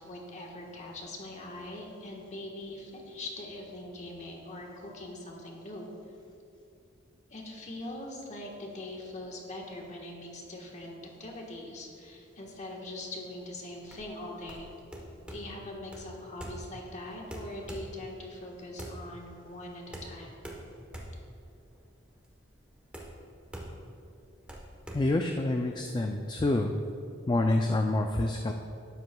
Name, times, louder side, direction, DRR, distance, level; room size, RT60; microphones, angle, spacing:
voice 1, 0.0-5.9 7.3-14.7 15.3-20.4, left 1 dB, 35° left, -1 dB, 1.3 m, -42 dB
sound 1, 13.8-26.0, right 1 dB, 5° right, 1.1 m, -45 dB
voice 2, 24.9-26.7 27.3-28.5, left 2 dB, 20° left, 4 dB, 0.3 m, -27 dB
12.5 x 9.3 x 2.3 m, 2.6 s
head